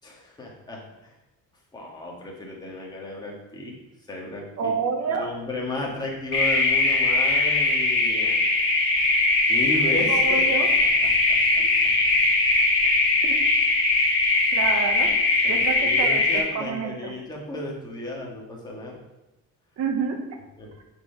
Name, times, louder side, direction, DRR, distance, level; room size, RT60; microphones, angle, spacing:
voice 1, 0.0-1.1 1.7-3.8 4.1-4.7 5.1-8.4 9.5-10.4 11.0-12.0 15.4-19.0 20.6-20.7, left 2 dB, 15° left, -2 dB, 1.7 m, -34 dB
voice 2, 4.6-5.4 10.1-10.7 11.6-11.7 12.6-12.7 13.2-13.4 14.5-15.2 15.4-17.1 19.8-20.2, right 5 dB, 55° right, 4 dB, 1.4 m, -28 dB
sound 1, 6.3-16.4, left 2 dB, 40° left, 2.2 m, -21 dB
8.5 x 4.8 x 5.8 m, 0.97 s
cardioid pair, 165°, 31 cm